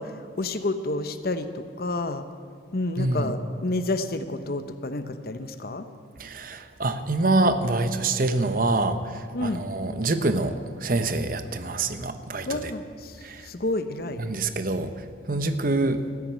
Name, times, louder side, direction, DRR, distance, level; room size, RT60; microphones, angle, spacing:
voice 1, 0.0-2.3 2.7-5.9 9.3-9.7 12.5-14.2 15.4-15.5, left 2 dB, 55° left, 10 dB, 0.8 m, -30 dB
voice 2, 3.0-3.3 6.2-12.6 13.2-13.5 14.2-14.9 15.3-16.0, right 2 dB, 50° right, 10 dB, 0.9 m, -26 dB
14.0 x 9.5 x 9.4 m, 2.1 s
head